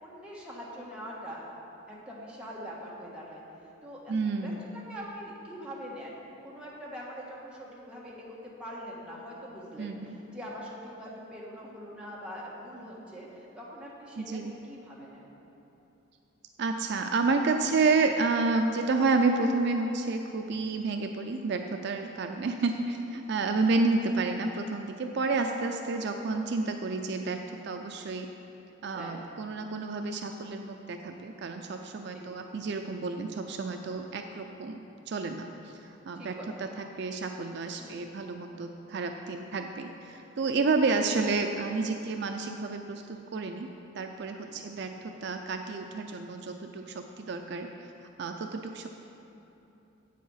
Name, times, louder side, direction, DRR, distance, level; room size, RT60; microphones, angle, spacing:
voice 1, 0.0-1.4 2.1-3.4 3.8-4.1 4.4-4.5 4.9-10.0 10.3-15.3 22.3-22.5 28.9-29.2 32.1-32.2 36.1-36.6 37.8-38.0 44.4-44.6, equal, 5° right, -6 dB, 1.4 m, -43 dB
voice 2, 4.1-4.6 9.8-10.2 14.2-14.5 16.6-28.3 28.8-34.8 35.1-43.7 43.9-47.7 48.2-48.9, right 3 dB, 55° right, 5 dB, 0.4 m, -30 dB
8.1 x 7.5 x 5.6 m, 2.9 s
head